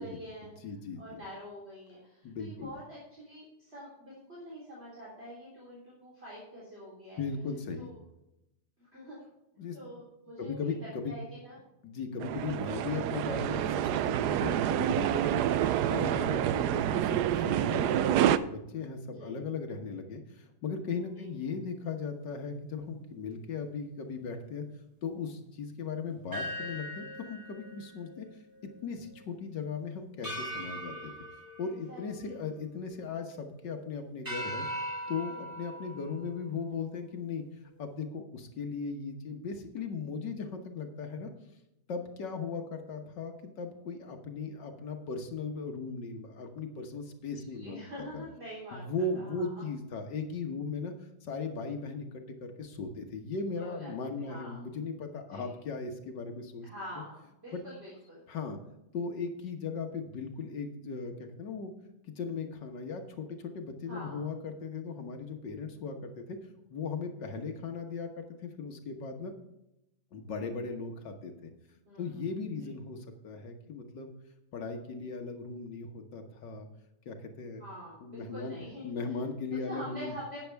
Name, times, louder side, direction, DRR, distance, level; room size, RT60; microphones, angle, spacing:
voice 1, 0.0-0.5 1.0-7.2 7.7-8.0 8.8-9.2 9.7-11.6 12.3-12.5 19.2-19.3 21.2-21.3 31.9-32.4 47.3-49.6 53.6-53.9 54.2-54.6 55.3-55.5 56.6-58.2 63.9-64.3 70.4-70.5 71.4-71.5 71.9-72.2 77.6-78.9 79.6-80.4, equal, 35° right, -6 dB, 4.0 m, -46 dB
voice 2, 0.6-1.2 2.2-2.7 7.2-7.9 9.6-9.8 10.4-11.2 11.8-24.6 25.0-28.3 28.8-31.1 31.6-37.4 37.8-41.3 41.9-47.8 48.1-48.2 48.7-50.9 51.2-56.7 57.5-57.6 58.3-58.6 58.9-61.7 62.0-66.4 66.7-69.3 70.1-71.5 72.0-74.1 74.5-76.7 77.1-77.6 78.0-78.6 78.8-80.1, left 4 dB, 80° left, 5 dB, 1.9 m, -38 dB
sound 1, 12.2-18.4, right 11 dB, 75° right, 1.1 m, -28 dB
sound 2, 26.3-28.8 29.1-29.2 30.2-32.7 33.2-33.7 34.2-37.1, equal, 10° right, 3.4 m, -40 dB
12.0 x 9.3 x 3.5 m, 0.86 s
omnidirectional pair, 1.9 m